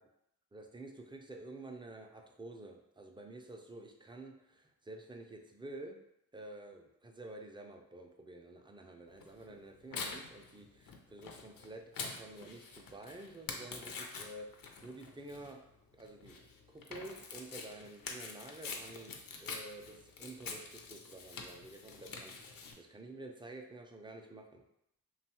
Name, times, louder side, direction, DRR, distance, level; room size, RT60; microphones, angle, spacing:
voice 1, 0.5-6.0 6.3-15.7 15.9-24.7, right 2 dB, 15° right, 3 dB, 0.3 m, -50 dB
Tearing, 9.2-22.7, left 4 dB, 55° left, 0.5 m, -46 dB
2.7 x 2.3 x 2.8 m, 0.80 s
cardioid pair, 55°, 40 cm